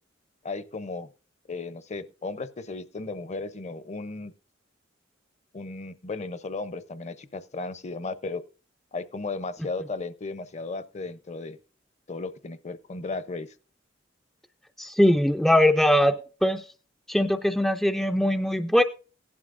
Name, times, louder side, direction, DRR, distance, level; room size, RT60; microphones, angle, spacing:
voice 1, 0.4-1.1 1.5-4.3 5.5-8.4 8.9-11.6 12.1-13.5, left 3 dB, 35° left, 0.7 m, -35 dB
voice 2, 14.8-16.6 17.1-18.8, left 1 dB, ahead, 0.4 m, -21 dB
16.5 x 11.5 x 2.5 m
head